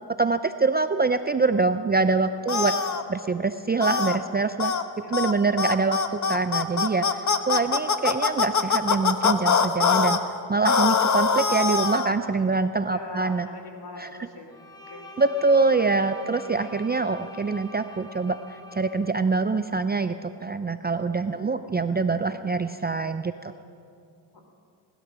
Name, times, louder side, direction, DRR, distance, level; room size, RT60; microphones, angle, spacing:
voice 1, 0.2-2.7 3.1-4.7 5.1-10.2 10.5-13.5 14.0-14.1 15.2-18.4 18.7-23.5, right 4 dB, 20° right, 10 dB, 0.4 m, -24 dB
sound 1, 2.5-3.0 3.8-4.2 4.6-4.8 5.1-5.3 5.6-10.2 10.6-12.1, left 5 dB, 40° left, 1.0 m, -23 dB
voice 2, 12.9-14.5 14.9-15.1 21.3-21.5 24.3-24.4, left 3 dB, 55° left, 4 dB, 3.1 m, -41 dB
Bowed string instrument, 14.5-19.1, left 1 dB, 10° left, 2.1 m, -44 dB
19.5 x 12.0 x 6.1 m, 2.4 s
cardioid pair, 85°, 46 cm